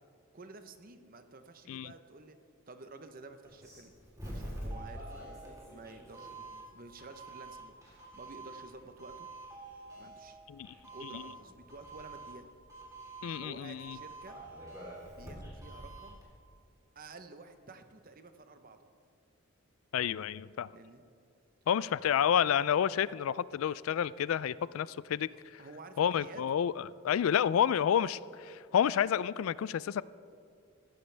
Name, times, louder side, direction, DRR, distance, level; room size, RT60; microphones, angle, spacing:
voice 1, 0.3-2.4 2.7-3.9 4.2-5.4 5.7-6.3 6.7-9.3 10.0-10.4 10.9-12.5 13.4-14.4 15.0-16.2 16.9-18.9 20.7-21.0 25.3-26.4, right 3 dB, 45° right, 8 dB, 0.8 m, -51 dB
Doorbell, 3.4-16.2, right 1 dB, 15° right, 3.5 m, -46 dB
voice 2, 13.2-14.0 19.9-20.7 21.7-25.6 26.0-30.0, left 9 dB, 80° left, 19 dB, 0.3 m, -30 dB
15.5 x 15.0 x 3.4 m, 2.4 s
head